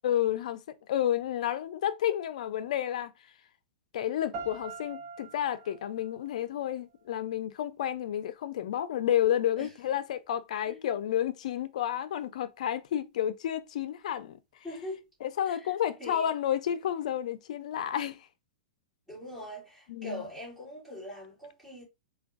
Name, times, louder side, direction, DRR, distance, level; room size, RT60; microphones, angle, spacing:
voice 1, 0.0-3.1 3.9-14.4 15.2-18.3 19.9-20.2, left 10 dB, 65° left, 0.4 m, -31 dB
sound 1, 4.3-7.3, right 4 dB, 35° right, 0.7 m, -45 dB
voice 2, 14.6-15.1 15.5-15.7 16.0-16.3 19.1-21.8, equal, 5° right, 1.9 m, -42 dB
3.4 x 2.2 x 2.3 m
hypercardioid pair, 145°, 4 cm